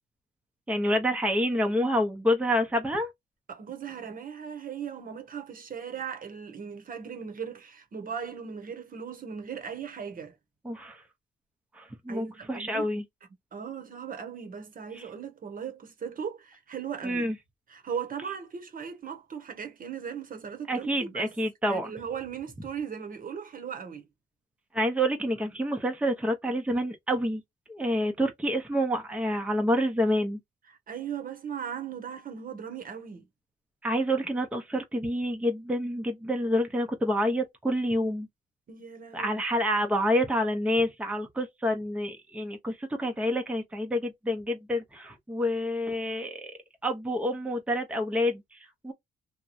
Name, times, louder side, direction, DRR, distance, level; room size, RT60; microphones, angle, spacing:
voice 1, 0.7-3.1 10.6-11.0 11.7-13.0 14.9-15.1 17.0-17.4 20.7-21.9 24.7-27.4 27.7-30.4 33.8-38.3 39.1-48.9, equal, 5° right, 0.8 m, -28 dB
voice 2, 3.5-10.3 12.1-12.9 13.5-17.3 17.7-21.3 21.7-24.0 30.9-33.3 38.7-39.4, right 7 dB, 45° right, 1.0 m, -38 dB
2.9 x 2.2 x 2.4 m
cardioid pair, 90°, 20 cm